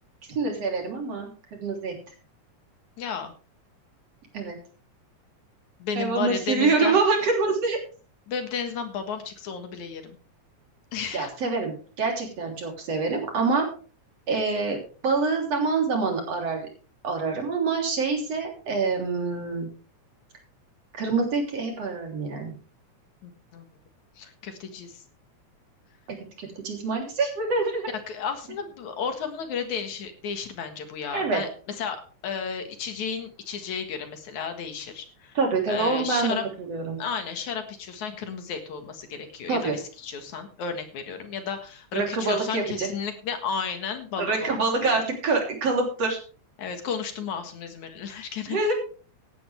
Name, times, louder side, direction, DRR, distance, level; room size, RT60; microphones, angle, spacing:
voice 1, 0.3-1.9 4.3-4.6 6.0-7.8 11.1-13.7 14.3-14.8 15.0-16.7 17.0-19.7 20.9-22.5 26.1-27.9 31.1-31.4 35.4-36.3 36.7-37.0 39.5-39.8 41.9-42.9 44.2-46.2 48.5-48.8, right 4 dB, 50° right, 1 dB, 4.4 m, -26 dB
voice 2, 3.0-3.3 5.8-7.0 8.3-10.2 10.9-11.3 23.2-23.7 24.2-25.0 28.1-35.4 35.7-36.4 37.0-44.5 44.8-45.0 46.6-48.8, left 6 dB, 70° left, 7 dB, 3.0 m, -33 dB
16.5 x 10.5 x 3.4 m, 0.38 s
omnidirectional pair, 3.5 m